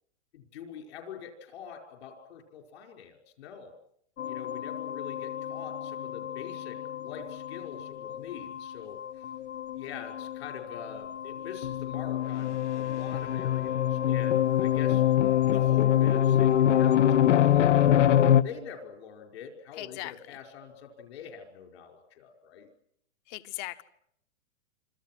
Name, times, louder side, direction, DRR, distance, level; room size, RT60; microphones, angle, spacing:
voice 1, 0.3-3.7 4.3-9.0 9.7-15.0 15.5-22.7, left 7 dB, 65° left, 5.6 m, -44 dB
sound 1, 4.2-18.4, left 11 dB, 80° left, 1.2 m, -26 dB
voice 2, 19.8-20.1 23.3-23.8, left 17 dB, 25° left, 0.9 m, -38 dB
28.0 x 26.0 x 6.1 m
hypercardioid pair, 160°, 36 cm